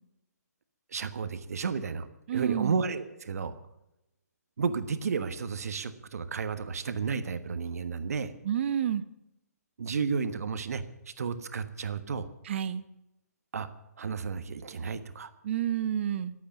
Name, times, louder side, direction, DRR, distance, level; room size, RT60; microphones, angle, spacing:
voice 1, 0.9-2.1 2.3-3.5 4.6-8.3 9.8-10.8 11.2-12.3 13.5-13.7 14.0-15.3, right 5 dB, 65° right, 11 dB, 1.4 m, -32 dB
voice 2, 2.3-2.8 8.4-9.0 12.4-12.8 15.4-16.3, right 10 dB, 45° right, 14 dB, 1.0 m, -29 dB
22.0 x 8.7 x 7.2 m, 0.88 s
hypercardioid pair, 145°, 9 cm